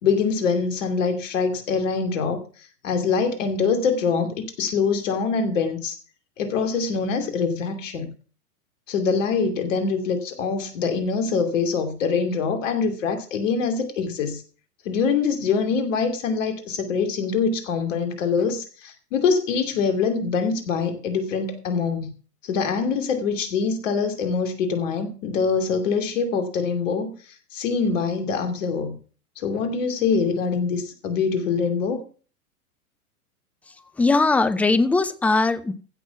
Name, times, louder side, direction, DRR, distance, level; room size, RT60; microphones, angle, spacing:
voice 1, 0.0-2.4 2.8-6.0 6.4-8.1 8.9-14.4 14.8-22.1 22.4-27.1 27.5-29.0 29.4-32.0, left 5 dB, 55° left, 2.7 m, -24 dB
voice 2, 34.0-35.7, left 3 dB, 5° left, 0.5 m, -20 dB
15.5 x 6.3 x 5.7 m
figure-of-eight pair, 100°, 46 cm